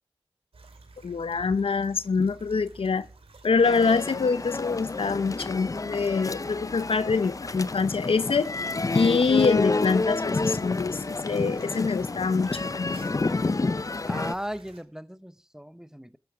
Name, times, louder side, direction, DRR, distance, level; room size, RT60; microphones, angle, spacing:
sound 1, 0.5-14.8, right 3 dB, 85° right, 2.6 m, -50 dB
voice 1, 1.0-3.0 3.4-8.5 8.9-13.1, left 4 dB, 75° left, 0.7 m, -25 dB
sound 2, 3.6-14.3, left 3 dB, 35° left, 0.5 m, -29 dB
voice 2, 14.0-16.2, equal, 5° right, 0.9 m, -37 dB
14.5 x 8.8 x 4.9 m
cardioid pair, 45°, 10 cm